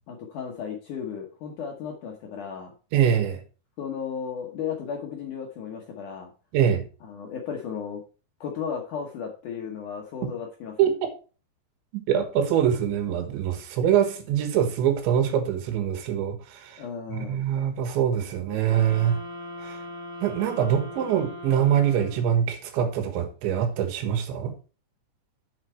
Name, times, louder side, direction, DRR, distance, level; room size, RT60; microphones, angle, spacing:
voice 1, 0.1-2.7 3.8-6.3 7.0-8.0 8.4-10.8 16.8-17.4, left 7 dB, 70° left, 2 dB, 2.0 m, -34 dB
voice 2, 2.9-3.4 6.5-6.8 10.8-11.1 12.1-16.8 17.1-19.2 19.6-19.8 20.2-24.5, right 9 dB, 85° right, 7 dB, 3.7 m, -24 dB
sound 1, 18.7-22.5, left 1 dB, 55° right, 1.0 m, -40 dB
8.0 x 7.3 x 4.4 m, 0.34 s
omnidirectional pair, 5.1 m